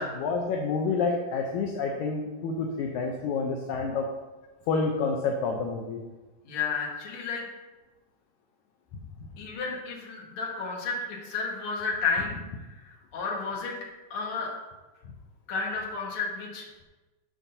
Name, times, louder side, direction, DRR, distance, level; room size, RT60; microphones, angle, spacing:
voice 1, 0.0-4.1 4.7-6.0 9.2-9.3, left 4 dB, 75° left, 1 dB, 1.8 m, -29 dB
voice 2, 6.4-7.5 9.4-13.8 14.1-14.5 15.5-16.8, left 4 dB, 50° left, -2 dB, 2.0 m, -32 dB
12.5 x 6.3 x 2.8 m, 1.2 s
omnidirectional pair, 4.0 m